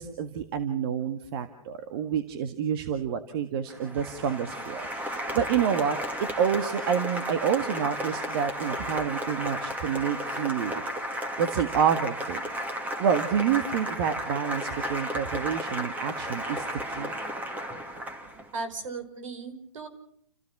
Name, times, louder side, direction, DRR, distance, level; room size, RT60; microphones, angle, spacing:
voice 1, 0.0-6.0 6.4-11.1 11.4-12.4 13.0-17.1, right 8 dB, 45° right, 8 dB, 1.7 m, -28 dB
Applause, 3.7-18.5, equal, 10° right, 2.4 m, -33 dB
voice 2, 18.5-19.9, right 3 dB, 65° right, 8 dB, 5.4 m, -36 dB
29.5 x 16.0 x 6.1 m, 0.67 s
hypercardioid pair, 135°, 18 cm